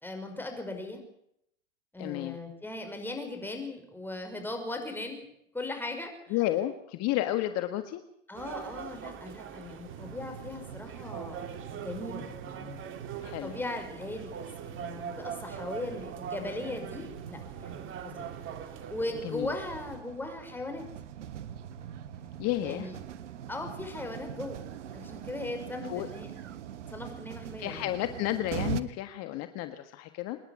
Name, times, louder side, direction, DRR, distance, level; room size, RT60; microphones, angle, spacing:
voice 1, 0.0-1.0 1.9-5.3 5.5-6.1 8.3-11.4 11.7-12.8 13.2-18.3 18.6-20.9 22.6-23.0 23.5-24.6 24.9-26.3 26.9-27.9, left 2 dB, 5° left, 4 dB, 5.8 m, -38 dB
voice 2, 2.0-2.4 6.3-8.0 13.2-13.5 19.2-19.5 22.4-22.9 25.9-26.1 27.6-30.4, left 14 dB, 45° left, 9 dB, 1.6 m, -31 dB
sound 1, 8.3-20.0, right 8 dB, 35° right, 2.3 m, -43 dB
sound 2, 9.9-28.8, right 9 dB, 80° right, 1.4 m, -43 dB
26.0 x 11.0 x 9.6 m, 0.75 s
hypercardioid pair, 110°, 35 cm